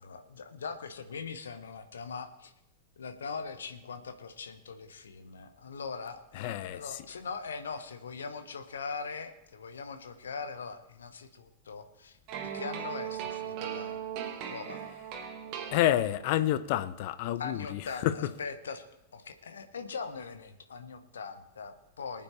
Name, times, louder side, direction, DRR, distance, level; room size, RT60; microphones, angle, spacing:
voice 1, 0.0-2.5 3.0-12.2 12.4-14.0 14.5-14.8 17.4-18.9 19.1-22.2, left 5 dB, 70° left, 1.2 m, -41 dB
voice 2, 6.3-7.0 15.7-18.3, left 13 dB, 50° left, 0.8 m, -29 dB
sound 1, 12.3-16.4, right 9 dB, 40° right, 1.9 m, -38 dB
23.5 x 9.0 x 3.4 m
figure-of-eight pair, 90°, 0 cm